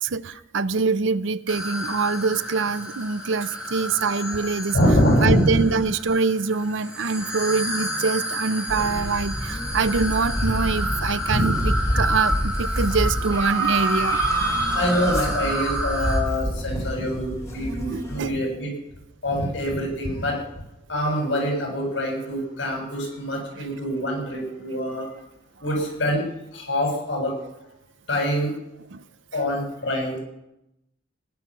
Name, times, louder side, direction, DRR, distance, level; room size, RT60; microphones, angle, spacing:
voice 1, 0.0-4.8 5.2-14.2 17.9-18.3 23.6-23.7 28.9-29.0, right 4 dB, 70° right, 0.6 m, -24 dB
sound 1, 1.5-16.2, right 1 dB, 5° right, 2.5 m, -29 dB
voice 2, 4.7-5.6 11.3-11.7 14.7-18.7 19.2-20.4 20.9-25.1 25.6-26.2 26.5-27.4 28.1-28.5 29.3-30.2, equal, 65° left, 7.1 m, -24 dB
sound 2, 8.7-18.3, equal, 15° left, 2.8 m, -28 dB
18.0 x 10.5 x 6.1 m
head